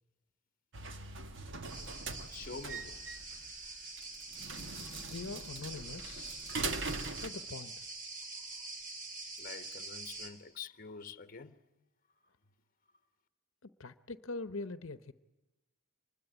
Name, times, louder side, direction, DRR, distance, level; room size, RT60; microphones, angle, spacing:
sound 1, 0.7-7.3, right 3 dB, 60° right, 1.6 m, -41 dB
sound 2, 1.7-10.3, right 3 dB, 40° right, 3.5 m, -45 dB
voice 1, 2.1-3.1 8.6-8.7 9.4-11.6, left 5 dB, 40° left, 1.0 m, -47 dB
voice 2, 5.0-6.5 7.2-7.8 13.6-15.1, left 3 dB, 65° left, 0.9 m, -43 dB
25.0 x 21.0 x 9.8 m
head